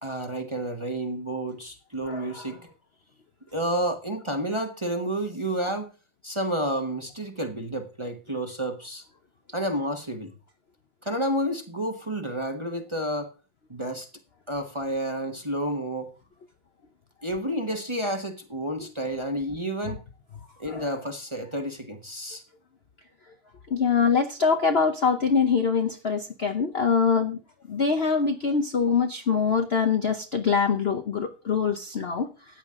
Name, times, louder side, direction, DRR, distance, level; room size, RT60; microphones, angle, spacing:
voice 1, 0.0-2.7 3.5-5.9 6.2-9.0 9.5-10.3 11.0-13.3 13.7-14.1 14.5-16.1 17.2-20.0 20.6-22.4, right 1 dB, 20° right, 0.8 m, -30 dB
voice 2, 2.1-2.4 20.7-20.9 23.7-27.4 27.7-32.3, left 5 dB, 70° left, 0.5 m, -24 dB
14.0 x 9.1 x 3.7 m
omnidirectional pair, 2.4 m